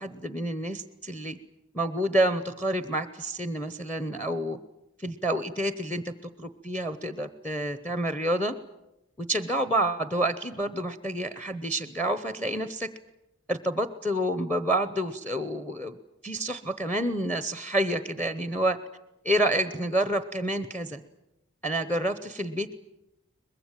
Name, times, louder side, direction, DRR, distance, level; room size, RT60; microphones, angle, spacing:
voice 1, 0.0-1.4 1.7-4.6 5.0-6.1 6.4-8.5 9.2-12.9 13.5-15.9 16.2-18.8 19.2-21.0 21.6-22.7, right 1 dB, 5° left, 12 dB, 0.8 m, -28 dB
23.0 x 21.0 x 9.0 m, 0.92 s
head